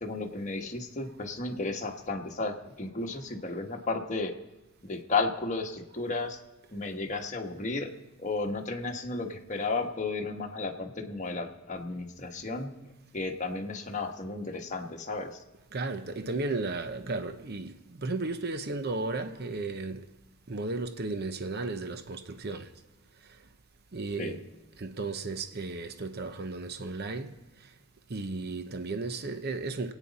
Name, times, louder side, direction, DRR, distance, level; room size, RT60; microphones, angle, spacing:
voice 1, 0.0-4.3 4.8-6.4 6.7-7.9 8.2-15.4 24.2-24.4, left 3 dB, 35° left, 1.3 m, -33 dB
voice 2, 15.7-20.0 20.5-22.7 23.9-24.4 24.8-27.3 28.1-29.9, right 3 dB, 50° right, 0.8 m, -34 dB
25.0 x 9.2 x 4.1 m
head